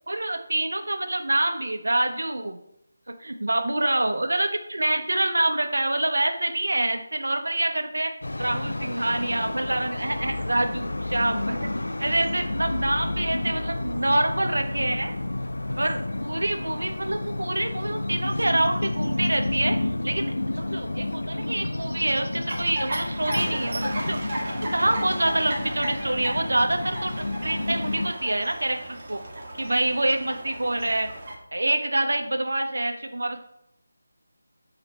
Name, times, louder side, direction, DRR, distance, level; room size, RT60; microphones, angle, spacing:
voice 1, 0.1-2.6 3.1-8.1 8.4-11.7 12.0-15.1 15.8-19.8 20.0-24.2 24.5-29.2 29.5-31.1 31.5-33.4, right 1 dB, 65° right, 5 dB, 0.9 m, -26 dB
sound 1, 8.2-28.1, left 2 dB, 65° left, 0.3 m, -30 dB
sound 2, 22.5-31.4, right 1 dB, 35° right, 1.3 m, -35 dB
9.2 x 3.1 x 4.2 m, 0.77 s
figure-of-eight pair, 160°, 0 cm